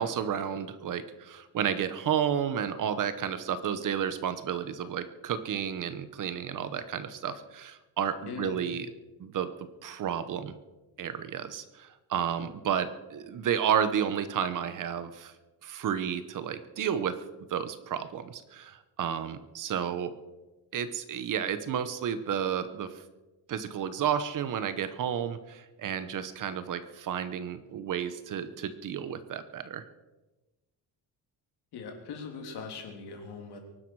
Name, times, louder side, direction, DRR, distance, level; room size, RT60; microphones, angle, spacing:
voice 1, 0.0-8.9 9.2-9.5 9.8-10.5 11.0-15.3 15.6-17.2 17.5-20.1 20.7-23.0 23.5-29.8, right 8 dB, 50° right, 12 dB, 1.1 m, -31 dB
voice 2, 8.3-8.6 31.7-33.6, left 5 dB, 70° left, 2 dB, 3.4 m, -40 dB
24.0 x 11.5 x 4.8 m, 1.1 s
cardioid pair, 170°, 41 cm